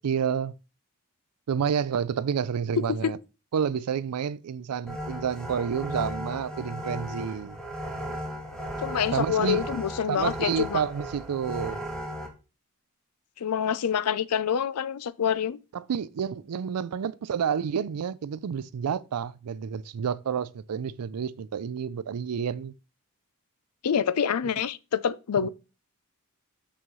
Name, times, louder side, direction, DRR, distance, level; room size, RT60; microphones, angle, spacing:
voice 1, 0.0-0.5 1.5-3.2 3.5-7.6 9.1-9.7 10.1-11.8 15.7-22.7 25.4-25.5, right 7 dB, 90° right, 0.4 m, -29 dB
voice 2, 2.8-3.1 8.8-10.8 13.4-15.6 23.8-25.5, left 7 dB, 85° left, 0.5 m, -26 dB
sound 1, 4.9-12.3, equal, 5° left, 1.5 m, -36 dB
6.9 x 6.1 x 3.1 m
head